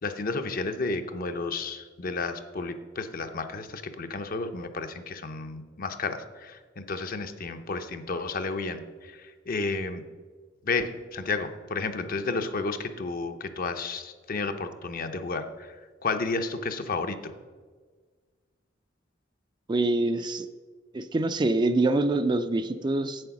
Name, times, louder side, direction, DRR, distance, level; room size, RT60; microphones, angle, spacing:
voice 1, 0.0-10.0 10.6-15.7 16.0-17.3, left 3 dB, 50° left, 8 dB, 0.7 m, -32 dB
voice 2, 19.7-20.5 20.9-23.2, right 2 dB, 25° right, 9 dB, 0.4 m, -25 dB
7.8 x 7.8 x 5.9 m, 1.5 s
head